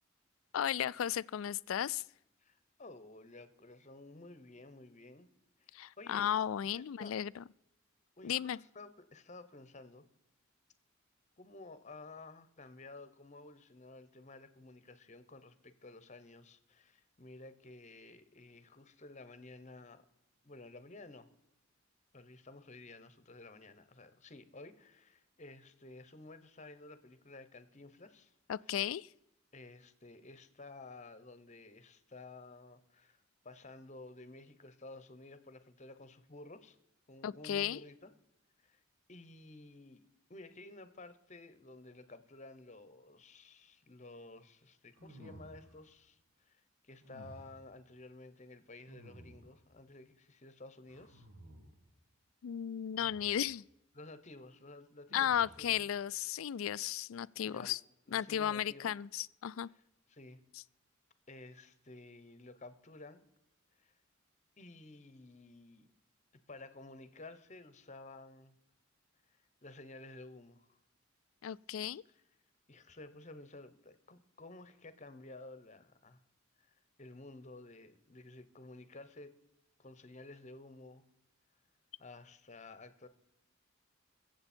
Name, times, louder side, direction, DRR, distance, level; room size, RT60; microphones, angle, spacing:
voice 1, 0.5-2.0 5.7-7.4 8.2-8.6 28.5-29.1 37.2-37.8 52.4-53.6 55.1-57.8 58.1-59.7 71.4-72.0, left 10 dB, 80° left, 0.4 m, -35 dB
voice 2, 2.4-5.3 5.6-6.3 6.6-7.1 8.2-10.0 11.4-20.0 20.4-21.3 22.1-28.3 29.5-36.8 37.1-38.1 38.6-38.8 39.1-40.0 40.3-51.3 53.9-55.8 57.5-57.8 58.1-58.9 59.7-59.8 60.1-60.4 61.3-63.2 63.8-63.9 64.6-65.9 66.5-68.5 69.6-70.8 72.7-76.2 76.6-79.4 79.8-81.0 82.0-83.1, left 2 dB, 35° left, 1.0 m, -53 dB
sound 1, 44.9-45.9 47.0-47.7 48.9-49.7 50.9-51.9 53.0-53.5 55.1-55.8, equal, 90° right, 2.8 m, -55 dB
22.0 x 7.8 x 4.4 m
head